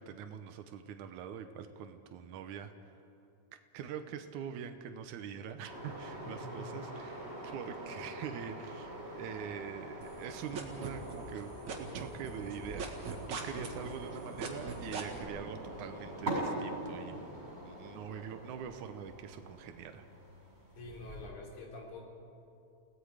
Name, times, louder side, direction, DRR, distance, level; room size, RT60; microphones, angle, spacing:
voice 1, 0.0-2.9 3.7-20.0, right 8 dB, 85° right, 7 dB, 2.4 m, -44 dB
sound 1, 5.6-21.3, right 1 dB, 20° right, 7.2 m, -43 dB
voice 2, 6.2-6.7 20.8-22.1, left 2 dB, 80° left, -1 dB, 4.6 m, -46 dB
sound 2, 10.0-11.4 11.7-15.2, right 6 dB, 70° right, 3.1 m, -39 dB
29.5 x 17.5 x 5.0 m, 2.7 s
omnidirectional pair, 3.4 m